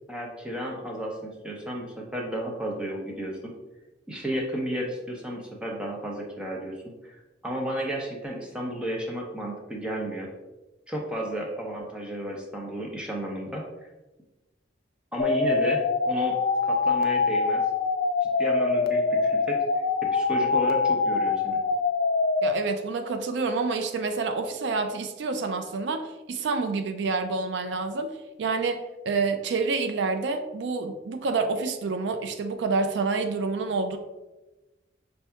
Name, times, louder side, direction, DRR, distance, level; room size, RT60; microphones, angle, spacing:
voice 1, 0.1-3.5 4.1-10.3 10.9-13.6 15.1-16.4 16.6-17.6 18.2-19.6 20.1-21.6, equal, 5° right, -1 dB, 0.5 m, -32 dB
sound 1, 15.2-22.5, left 4 dB, 50° left, 0.3 m, -24 dB
voice 2, 22.4-28.1 28.4-34.0, right 4 dB, 70° right, 6 dB, 0.3 m, -28 dB
5.5 x 2.6 x 2.2 m, 1.1 s
head